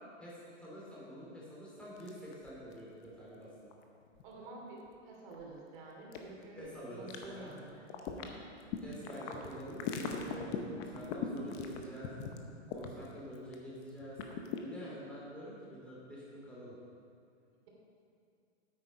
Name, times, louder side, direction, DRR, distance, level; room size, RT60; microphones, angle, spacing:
voice 1, 0.2-3.5 6.5-7.5 8.8-12.1 12.7-14.2 14.6-16.8, equal, 5° left, -8 dB, 2.8 m, -47 dB
sound 1, 1.8-2.8 3.0-3.1 3.7-4.3 4.9-5.0 5.3-5.4 6.1-6.7 7.1-7.6 7.8-13.5 13.8-14.6, left 7 dB, 25° left, 0.8 m, -39 dB
voice 2, 4.2-4.8 5.0-8.3 9.0-9.4, right 2 dB, 45° right, -2 dB, 2.9 m, -50 dB
8.8 x 8.7 x 5.3 m, 2.4 s
hypercardioid pair, 145°, 36 cm